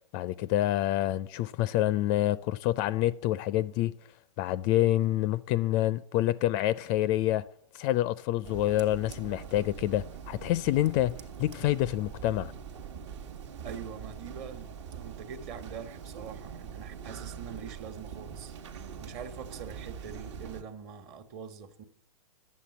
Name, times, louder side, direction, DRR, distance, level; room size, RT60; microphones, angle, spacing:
voice 1, 0.1-3.9 4.4-7.5 7.7-12.5, left 14 dB, 30° left, 0.4 m, -27 dB
sound 1, 8.4-20.6, right 7 dB, 55° right, 1.2 m, -43 dB
voice 2, 13.6-18.5 18.9-21.8, right 7 dB, 35° right, 1.4 m, -44 dB
10.5 x 7.4 x 8.5 m
hypercardioid pair, 125°, 18 cm